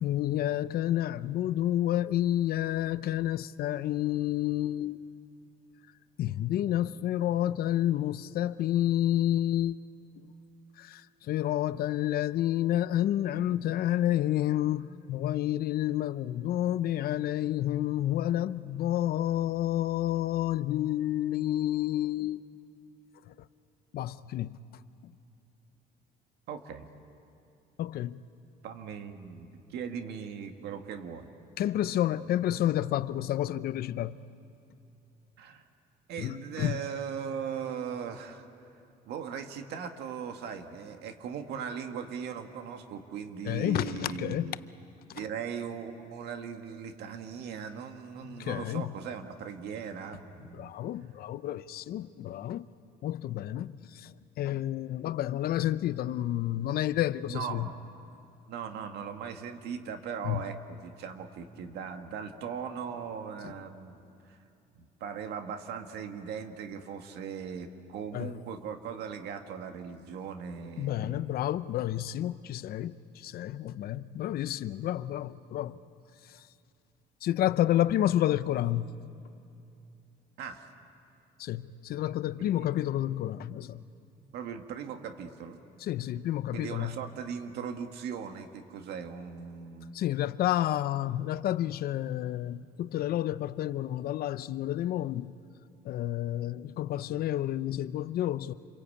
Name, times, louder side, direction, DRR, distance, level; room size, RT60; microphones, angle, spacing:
voice 1, 0.0-5.1 6.2-9.8 10.2-10.3 10.8-22.4 23.3-23.5 23.9-24.6 25.0-25.1 27.8-28.2 31.6-34.2 36.2-36.8 43.4-44.5 45.1-45.2 48.3-48.9 50.5-52.7 53.0-57.7 60.2-60.5 63.4-63.5 68.1-68.4 70.8-75.8 76.3-76.4 77.2-78.9 81.4-83.8 85.8-87.0 89.9-95.4 95.8-98.5, left 13 dB, 65° left, 0.7 m, -30 dB
voice 2, 26.5-26.9 28.6-31.3 35.4-35.6 36.1-38.5 39.1-44.5 45.1-50.7 57.3-57.8 58.5-64.4 64.7-71.4 80.4-80.7 82.4-82.7 84.3-85.6 86.5-89.9, right 7 dB, 75° right, 1.8 m, -39 dB
28.0 x 23.0 x 8.5 m
cardioid pair, 110°, 17 cm